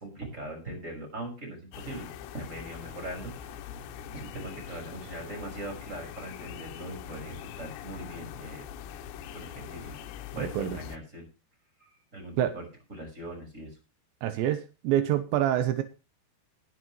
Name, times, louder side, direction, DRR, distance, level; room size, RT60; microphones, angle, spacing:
voice 1, 0.0-3.7 4.1-8.6 9.3-10.0 10.3-11.2 11.8-12.6 12.9-13.8, right 1 dB, 15° right, 2 dB, 5.8 m, -41 dB
sound 1, 1.7-11.0, left 9 dB, 80° left, 3.1 m, -43 dB
voice 2, 10.4-10.8 12.4-12.5 14.2-15.8, right 11 dB, 80° right, 10 dB, 3.2 m, -26 dB
20.5 x 8.6 x 3.1 m, 0.31 s
omnidirectional pair, 5.1 m